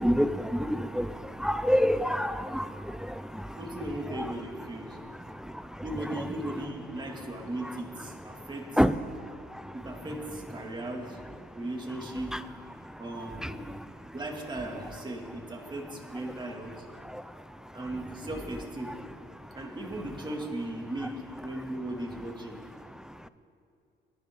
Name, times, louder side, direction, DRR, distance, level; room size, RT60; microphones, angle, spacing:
voice 1, 0.7-1.0 1.4-2.6 8.8-8.9, equal, 5° right, 13 dB, 0.4 m, -24 dB
voice 2, 3.6-5.0 5.8-8.8 9.7-11.2 11.5-12.3 13.0-13.6 14.1-16.8 17.7-18.9 19.5-21.1 21.4-22.6, right 1 dB, 20° right, 0 dB, 2.4 m, -37 dB
21.5 x 11.0 x 3.8 m, 2.5 s
cardioid pair, 90°, 20 cm